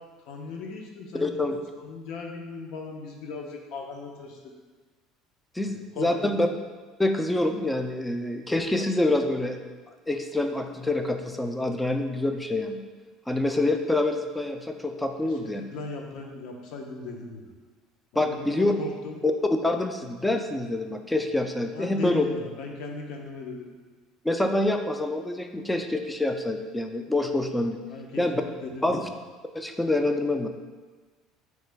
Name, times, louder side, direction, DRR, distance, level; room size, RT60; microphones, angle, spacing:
voice 1, 0.3-1.4 1.8-4.4 6.0-6.3 15.2-17.5 18.1-19.2 21.7-23.7 27.9-28.3 28.6-29.0, left 4 dB, 70° left, 1 dB, 0.6 m, -37 dB
voice 2, 1.2-1.6 5.6-6.5 7.0-9.6 10.1-12.8 13.3-15.6 18.2-18.7 19.2-19.3 19.6-22.2 24.2-27.8 28.2-28.4 28.8-29.1 29.5-30.5, left 2 dB, 5° left, 6 dB, 0.3 m, -26 dB
3.7 x 3.2 x 3.4 m, 1.4 s
supercardioid pair, 115°, 0 cm